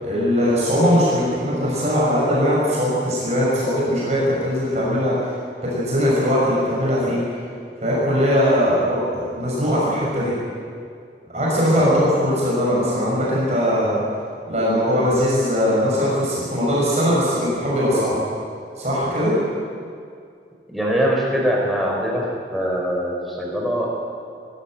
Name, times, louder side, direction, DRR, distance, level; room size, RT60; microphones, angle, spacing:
voice 1, 0.0-5.4 5.6-7.4 7.8-10.3 11.3-14.0 14.5-18.2 18.8-19.4, equal, 40° right, -6 dB, 6.3 m, -20 dB
voice 2, 11.7-12.1 20.7-22.2 22.5-24.0, equal, ahead, -3 dB, 4.4 m, -22 dB
22.5 x 13.5 x 9.1 m, 2.3 s
head